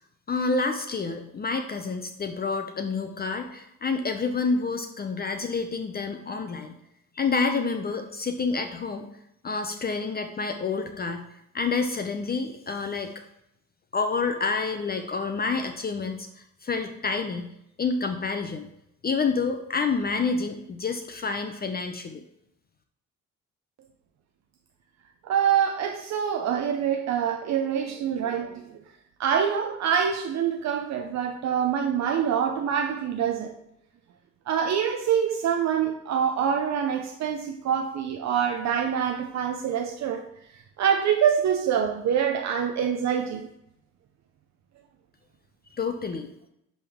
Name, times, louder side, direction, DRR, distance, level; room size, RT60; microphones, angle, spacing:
voice 1, 0.3-6.7 7.1-9.1 9.4-11.2 11.5-13.1 13.9-17.5 17.8-18.7 19.0-22.2 45.7-46.3, left 4 dB, 30° left, 0.6 m, -28 dB
voice 2, 25.2-28.8 29.2-33.5 34.5-40.2 40.8-43.5, right 8 dB, 65° right, 0.6 m, -25 dB
10.5 x 3.6 x 3.5 m
cardioid pair, 90°, 30 cm